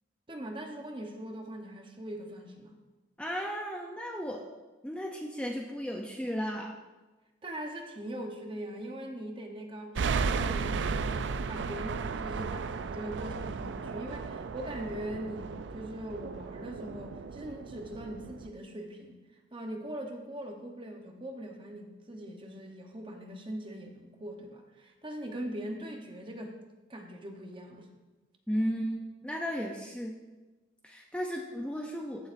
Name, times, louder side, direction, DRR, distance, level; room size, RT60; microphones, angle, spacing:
voice 1, 0.3-2.7 7.4-19.2 19.5-26.6 26.9-27.9, right 1 dB, 25° right, 3 dB, 0.9 m, -41 dB
voice 2, 3.2-4.5 4.8-6.8 28.5-30.2 30.8-32.3, equal, 5° left, 0 dB, 0.5 m, -34 dB
sound 1, 10.0-18.5, right 5 dB, 70° right, 0.4 m, -35 dB
15.0 x 7.0 x 2.6 m, 1.2 s
head